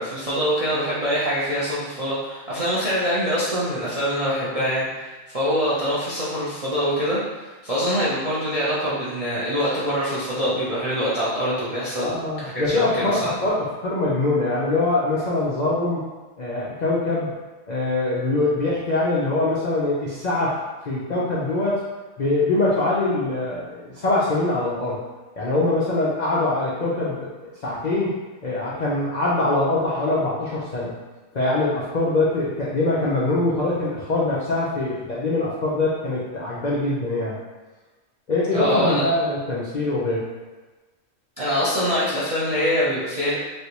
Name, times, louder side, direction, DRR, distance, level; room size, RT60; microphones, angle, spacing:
voice 1, 0.0-13.4 38.5-39.0 41.4-43.4, equal, 55° right, -9 dB, 0.4 m, -24 dB
voice 2, 11.9-16.0 16.4-17.3 17.7-20.6 20.9-21.8 22.2-25.0 25.4-27.3 27.6-28.1 28.4-30.9 31.3-37.4 38.3-40.2, left 2 dB, 80° left, -7 dB, 0.4 m, -23 dB
3.2 x 2.6 x 2.9 m, 1.2 s
omnidirectional pair, 1.5 m